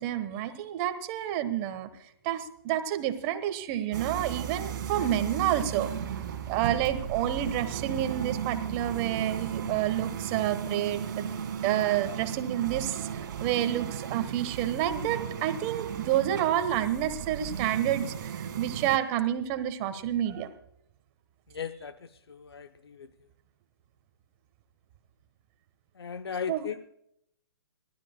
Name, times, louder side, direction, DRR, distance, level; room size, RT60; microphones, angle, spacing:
voice 1, 0.0-1.9 2.2-5.9 6.5-11.3 11.6-20.5 26.5-26.7, right 11 dB, 30° right, 9 dB, 1.3 m, -29 dB
sound 1, 3.9-19.0, right 8 dB, 50° right, 1.8 m, -35 dB
voice 2, 21.5-22.0 22.3-23.1 26.0-26.8, left 7 dB, 80° left, 11 dB, 0.6 m, -36 dB
29.0 x 12.5 x 2.2 m, 0.73 s
hypercardioid pair, 135°, 13 cm